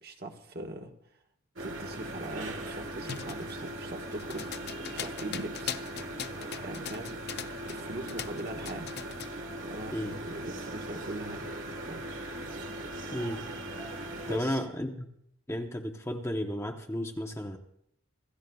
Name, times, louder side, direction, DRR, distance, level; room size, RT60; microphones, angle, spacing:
voice 1, 0.0-0.9 1.6-5.8 6.6-7.2 7.6-8.9 9.7-11.5 11.9-12.1 14.2-14.6, right 2 dB, 50° right, 3 dB, 1.3 m, -41 dB
sound 1, 1.6-14.4, right 1 dB, 65° right, 1.5 m, -39 dB
sound 2, 3.0-7.8 8.1-9.4, left 9 dB, 50° left, 0.5 m, -40 dB
voice 2, 13.1-13.4 14.3-15.1 15.5-17.6, equal, 15° left, 4 dB, 0.8 m, -33 dB
26.0 x 14.0 x 2.3 m, 0.74 s
head